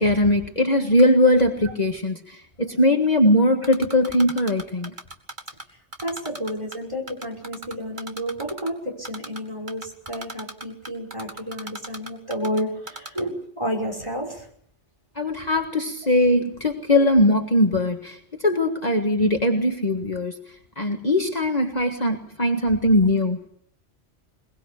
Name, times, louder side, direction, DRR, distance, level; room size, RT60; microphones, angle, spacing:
voice 1, 0.0-4.9 15.1-20.4 20.8-23.4, left 1 dB, 35° left, 3 dB, 1.7 m, -20 dB
Typing, 3.6-5.6 5.9-6.8 7.1-8.7 9.0-9.4 9.7-12.6 12.9-13.2, right 2 dB, 40° right, 2.2 m, -36 dB
voice 2, 6.0-14.5, equal, 25° right, 1 dB, 5.8 m, -31 dB
22.0 x 22.0 x 7.0 m, 0.66 s
omnidirectional pair, 1.2 m